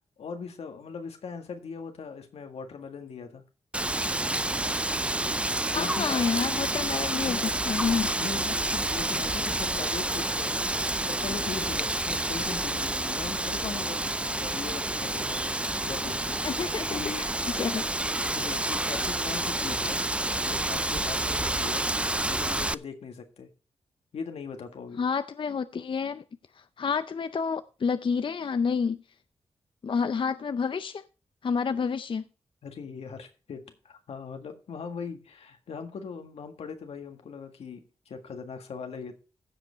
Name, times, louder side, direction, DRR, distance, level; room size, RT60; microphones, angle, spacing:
voice 1, 0.2-3.4 5.6-6.2 7.2-7.4 8.2-16.4 16.9-17.2 18.3-20.0 20.3-21.9 22.3-23.5 24.1-25.0 32.6-39.1, left 5 dB, 90° left, 1.7 m, -40 dB
Wind, 3.7-22.7, right 1 dB, 10° right, 0.4 m, -29 dB
voice 2, 5.7-8.1 13.0-13.1 16.4-17.9 25.0-26.2 26.8-29.0 29.8-31.0 31.4-32.2, left 5 dB, 55° left, 0.5 m, -29 dB
15.0 x 5.3 x 4.5 m
cardioid pair, 60°, 10 cm